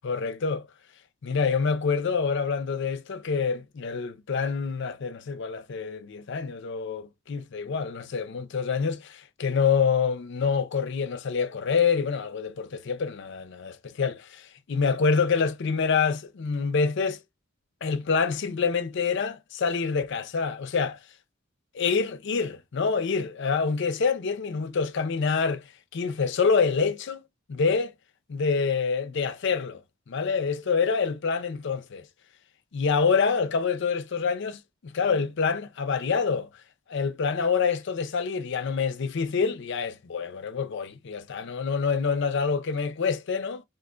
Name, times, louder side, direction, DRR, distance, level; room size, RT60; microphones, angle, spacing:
voice 1, 0.0-0.7 1.2-17.2 17.8-21.0 21.7-25.6 25.9-27.2 27.5-27.9 28.3-29.8 30.1-32.1 32.7-36.5 36.9-43.6, left 5 dB, 60° left, 0.5 m, -26 dB
2.4 x 2.4 x 3.7 m
head